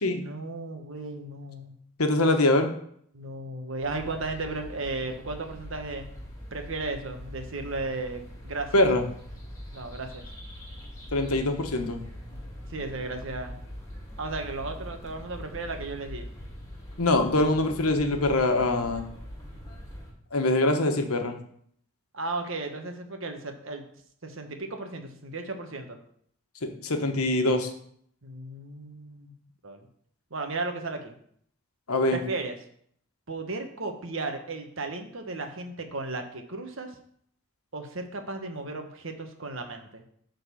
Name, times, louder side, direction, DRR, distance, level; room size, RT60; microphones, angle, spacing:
voice 1, 0.1-1.8 3.1-6.1 6.5-8.8 9.7-10.2 12.7-13.6 14.2-16.3 22.1-23.8 24.2-26.0 28.2-29.3 29.6-29.8 30.3-31.1 32.1-32.6 33.3-36.9 37.7-40.0, right 3 dB, 60° right, 5 dB, 1.2 m, -35 dB
voice 2, 2.0-2.7 8.7-9.0 11.1-12.0 17.0-19.0 20.3-21.3 26.6-27.7 31.9-32.2, left 2 dB, 85° left, 5 dB, 1.3 m, -23 dB
sound 1, 3.8-20.1, equal, 15° left, 2.4 m, -42 dB
9.1 x 4.0 x 6.9 m, 0.64 s
head